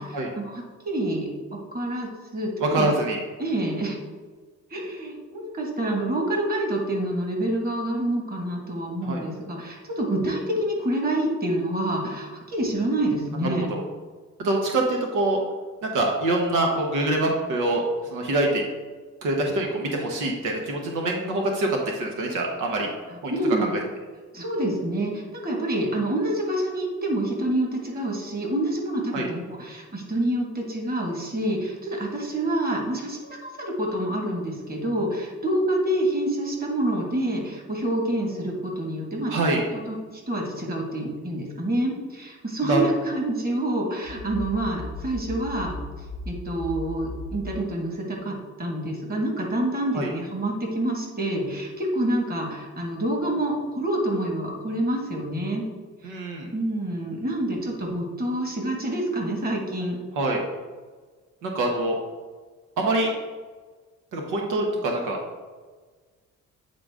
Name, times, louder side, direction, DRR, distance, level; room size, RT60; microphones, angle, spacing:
voice 1, 0.0-2.9 3.4-4.0 4.7-13.7 23.3-23.8 24.3-45.7 46.3-55.6 56.5-60.0, right 1 dB, 30° right, 0 dB, 1.8 m, -27 dB
voice 2, 2.6-3.2 9.0-9.2 13.4-13.8 14.4-15.4 15.8-17.8 18.1-18.6 19.2-22.9 23.2-23.3 29.1-29.3 39.3-39.6 42.6-42.8 49.9-50.1 56.0-56.5 60.1-60.4 61.4-62.0 62.8-63.1 64.1-65.2, right 2 dB, 90° right, 0 dB, 1.1 m, -25 dB
sound 1, 44.1-47.6, left 2 dB, 35° left, 0.6 m, -36 dB
8.7 x 3.9 x 3.6 m, 1.4 s
cardioid pair, 90°, 30 cm